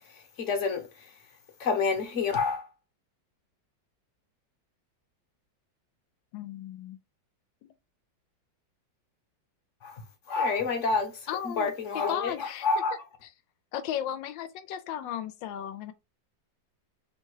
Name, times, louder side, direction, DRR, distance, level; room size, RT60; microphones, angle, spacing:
voice 1, 0.4-1.1 1.6-2.7 9.8-10.0 10.3-11.2 11.4-13.0, left 4 dB, 50° left, 1.1 m, -28 dB
voice 2, 6.3-7.0 7.6-7.7 11.3-12.7 13.7-15.9, left 10 dB, 85° left, 1.3 m, -35 dB
3.3 x 2.8 x 4.6 m
omnidirectional pair, 2.0 m